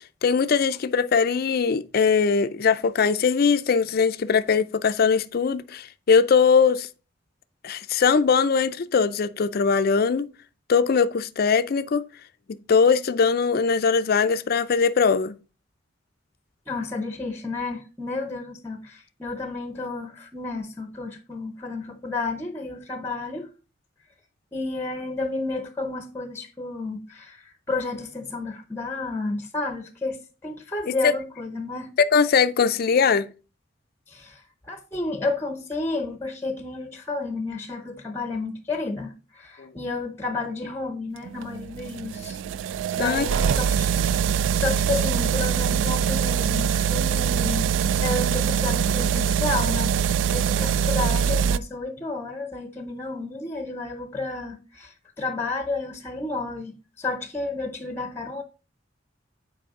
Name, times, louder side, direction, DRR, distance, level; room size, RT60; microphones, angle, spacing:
voice 1, 0.2-6.9 7.6-10.3 10.7-12.0 12.7-15.4 31.0-31.1 32.1-33.3 39.6-39.7 43.0-43.2, left 5 dB, 55° left, 0.4 m, -21 dB
voice 2, 16.7-23.5 24.5-31.9 34.1-42.4 42.7-43.9 44.5-47.7 48.0-58.4, left 3 dB, 10° left, 0.7 m, -31 dB
sound 1, 41.3-51.6, right 8 dB, 75° right, 0.3 m, -23 dB
7.6 x 4.8 x 3.6 m
head